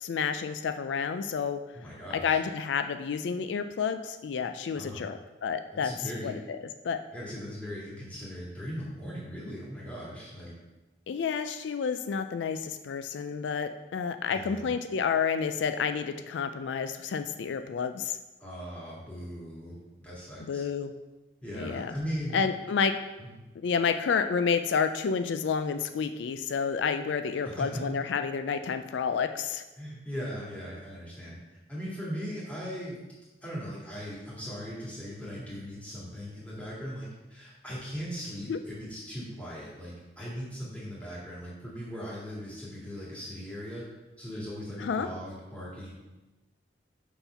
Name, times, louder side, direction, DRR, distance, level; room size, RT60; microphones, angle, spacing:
voice 1, 0.0-1.6 2.2-5.9 6.2-6.4 6.8-7.0 11.1-18.2 20.4-20.9 21.6-21.9 22.3-22.9 23.6-29.6 38.5-38.6 44.8-45.1, left 6 dB, 85° left, 9 dB, 0.4 m, -30 dB
voice 2, 1.7-2.4 4.7-5.1 5.7-6.4 7.1-10.5 14.3-14.7 18.4-20.6 21.4-22.4 23.2-23.4 27.4-27.9 29.8-31.4 31.7-33.0 33.4-43.8 44.2-45.9, equal, 10° left, -7 dB, 2.0 m, -39 dB
5.6 x 4.3 x 5.6 m, 1.1 s
head